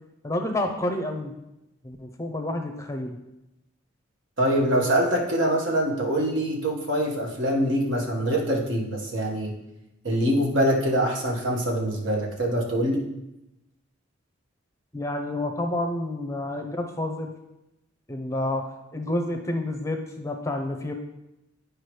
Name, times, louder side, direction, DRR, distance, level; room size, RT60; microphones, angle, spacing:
voice 1, 0.2-1.3 1.8-3.2 14.9-17.3 18.1-20.9, left 1 dB, 15° left, 5 dB, 0.5 m, -29 dB
voice 2, 4.4-9.5 10.0-13.0, right 1 dB, 70° right, -1 dB, 1.5 m, -24 dB
10.0 x 4.8 x 3.2 m, 0.91 s
head